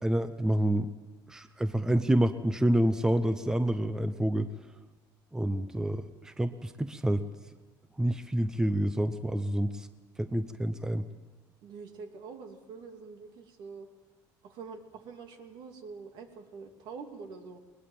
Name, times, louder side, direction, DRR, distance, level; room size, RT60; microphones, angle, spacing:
voice 1, 0.0-0.9 1.3-4.5 5.3-7.2 8.0-9.9 10.2-11.1, right 1 dB, 5° right, 11 dB, 0.8 m, -28 dB
voice 2, 11.6-13.9 14.4-17.6, right 5 dB, 65° right, 5 dB, 2.9 m, -45 dB
21.0 x 20.5 x 7.4 m, 1.2 s
cardioid pair, 125°, 8 cm